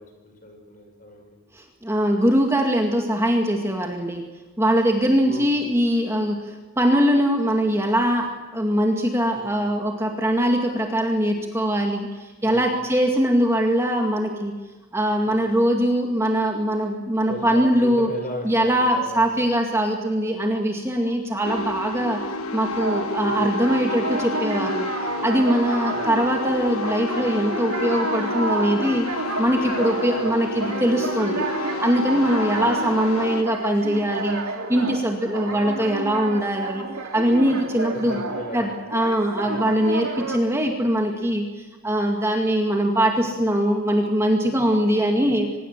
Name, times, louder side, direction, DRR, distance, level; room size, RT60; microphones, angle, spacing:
voice 1, 0.0-1.4 5.2-5.5 9.3-9.7 12.4-12.6 12.9-13.0 15.2-15.5 17.3-19.6 23.3-23.6 25.9-26.3 30.1-30.6 32.5-32.8 35.5-35.8 37.9-38.8 39.4-39.7, left 1 dB, 40° left, 4 dB, 5.8 m, -37 dB
voice 2, 1.5-4.2 4.6-14.5 14.9-18.1 18.4-22.2 22.5-24.9 25.2-29.1 29.4-31.5 31.8-34.4 34.7-36.8 37.1-38.2 38.5-45.5, equal, 10° right, 2 dB, 2.2 m, -22 dB
sound 1, 21.4-33.4, left 3 dB, 90° left, 1.5 m, -30 dB
sound 2, 22.7-40.4, right 3 dB, 90° right, 3.2 m, -31 dB
25.0 x 21.5 x 7.6 m, 1.2 s
head